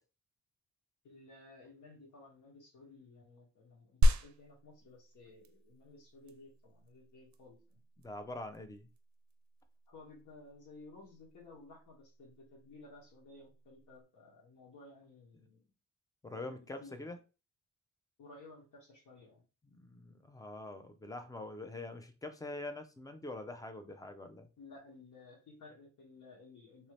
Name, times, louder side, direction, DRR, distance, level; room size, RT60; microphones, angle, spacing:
voice 1, 1.0-7.8 9.9-15.6 16.3-17.1 18.2-19.4 24.6-26.9, left 3 dB, 75° left, 1.5 m, -56 dB
sound 1, 4.0-14.0, equal, 65° right, 0.5 m, -36 dB
voice 2, 8.0-8.9 16.2-17.2 19.7-24.5, left 2 dB, 10° left, 0.4 m, -44 dB
3.3 x 2.7 x 3.1 m
cardioid pair, 125°, 31 cm